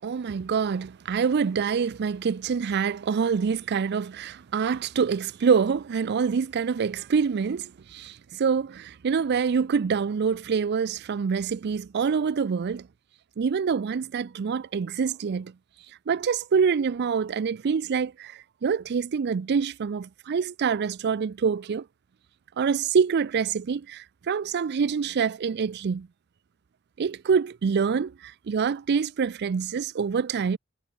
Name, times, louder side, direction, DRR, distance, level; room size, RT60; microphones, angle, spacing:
voice 1, 0.0-12.9 13.4-15.5 16.1-21.8 22.6-26.1 27.0-30.6, right 6 dB, 50° right, 0.4 m, -26 dB
head